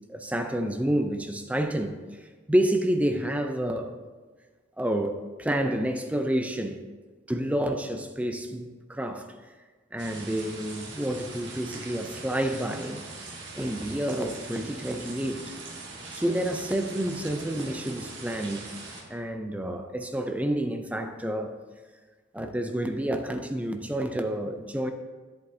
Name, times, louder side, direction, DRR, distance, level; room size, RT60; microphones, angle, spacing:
voice 1, 0.1-1.9 2.2-4.0 4.8-6.8 7.3-9.3 9.9-13.0 13.6-15.5 16.1-18.6 19.1-21.6 22.3-24.9, right 1 dB, 5° right, 5 dB, 0.4 m, -29 dB
sound 1, 10.0-19.0, right 3 dB, 65° right, 1.6 m, -42 dB
10.5 x 8.0 x 2.7 m, 1.4 s
head